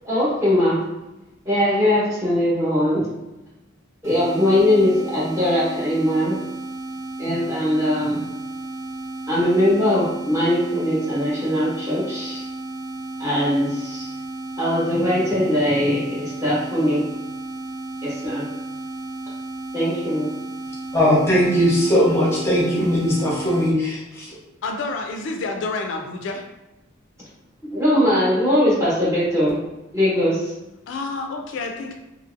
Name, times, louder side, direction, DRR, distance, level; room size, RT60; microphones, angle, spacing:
voice 1, 0.0-0.8 1.4-3.1 4.0-6.4 7.2-8.2 9.3-12.4 13.2-14.1 14.6-17.0 18.0-18.5 19.7-20.3 27.7-29.6 29.9-30.5, left 1 dB, 15° right, -8 dB, 0.9 m, -20 dB
sound 1, 4.0-23.7, right 2 dB, 75° right, 0.7 m, -33 dB
voice 2, 20.9-24.3, equal, 15° left, -5 dB, 0.7 m, -19 dB
voice 3, 24.6-26.4 30.9-31.9, left 3 dB, 65° left, 3 dB, 0.3 m, -28 dB
2.9 x 2.6 x 2.4 m, 0.96 s
head